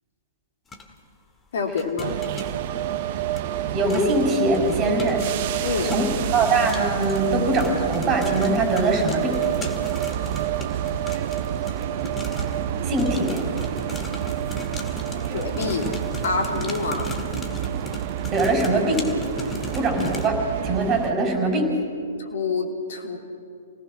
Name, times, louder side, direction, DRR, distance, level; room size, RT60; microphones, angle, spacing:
sound 1, 0.7-0.8 1.8-2.5 3.4-3.5 3.9-4.2 4.5-12.6 13.0-20.3, left 2 dB, 15° left, 2.1 m, -37 dB
voice 1, 1.5-2.2 5.6-5.9 15.3-15.9 16.2-17.1 22.2-23.2, left 4 dB, 60° left, 3 dB, 3.2 m, -27 dB
sound 2, 2.0-21.1, right 11 dB, 45° right, 0.9 m, -28 dB
voice 2, 3.7-5.2 5.8-9.4 12.8-13.4 18.3-19.0 19.7-21.7, right 2 dB, 25° right, 3 dB, 5.6 m, -22 dB
28.5 x 18.5 x 6.2 m, 2.4 s
figure-of-eight pair, 115°, 0 cm